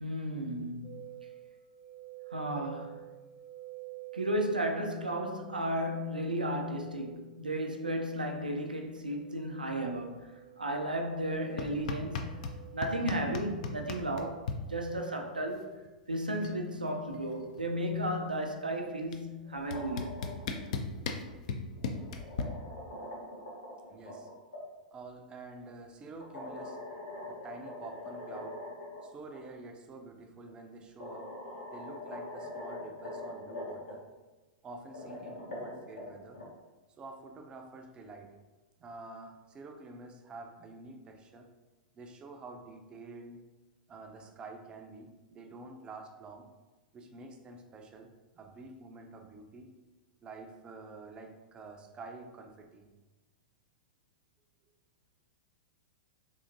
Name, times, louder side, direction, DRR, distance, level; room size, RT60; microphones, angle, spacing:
voice 1, 0.0-1.1 2.3-3.0 4.1-10.3 10.6-12.4 12.7-15.7 16.1-20.2, right 1 dB, 85° right, 0.4 m, -34 dB
sound 1, 0.8-13.8, right 17 dB, 20° left, 0.8 m, -51 dB
sound 2, 11.6-12.6 12.8-14.6 15.9-16.0 16.2-16.6 16.9-18.2 19.1-19.2 19.7-22.4, left 5 dB, 55° left, 0.4 m, -36 dB
sound 3, 19.4-20.6 21.8-24.6 26.2-29.0 29.3-29.4 30.5-30.6 31.0-33.9 34.8-36.4, left 1 dB, 80° left, 1.1 m, -43 dB
voice 2, 23.9-24.3 24.9-26.8 27.3-28.6 29.0-31.3 31.7-34.1 34.6-36.4 37.0-38.4 38.8-41.5 41.9-43.4 43.9-46.5 46.9-48.1 48.4-49.7 50.2-52.9, right 3 dB, 20° right, 0.4 m, -48 dB
3.8 x 2.7 x 2.6 m
figure-of-eight pair, 100°, 5 cm